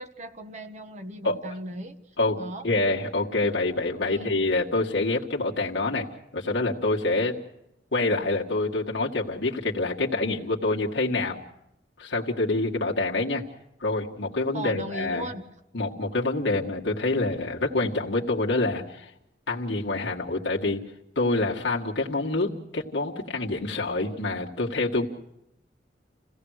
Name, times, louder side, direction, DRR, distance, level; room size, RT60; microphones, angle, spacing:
voice 1, 0.0-2.0 2.4-2.6 4.0-4.4 14.5-15.4, right 1 dB, 40° right, 7 dB, 1.4 m, -37 dB
voice 2, 2.2-6.1 6.3-7.4 7.9-11.4 12.0-13.4 13.8-15.3 15.7-19.1 19.5-20.8 21.2-25.1, left 2 dB, 90° left, -2 dB, 2.0 m, -26 dB
28.5 x 16.5 x 6.5 m, 0.85 s
head